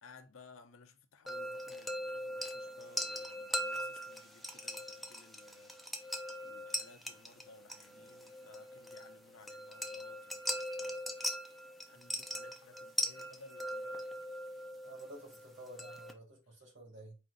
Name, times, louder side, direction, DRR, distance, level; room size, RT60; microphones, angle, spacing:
voice 1, 0.0-11.0 11.9-14.3, left 3 dB, 75° left, 0.7 m, -59 dB
sound 1, 1.3-16.1, equal, ahead, 0.4 m, -41 dB
voice 2, 14.8-17.2, right 1 dB, 60° right, 1.8 m, -52 dB
4.2 x 2.6 x 3.9 m
head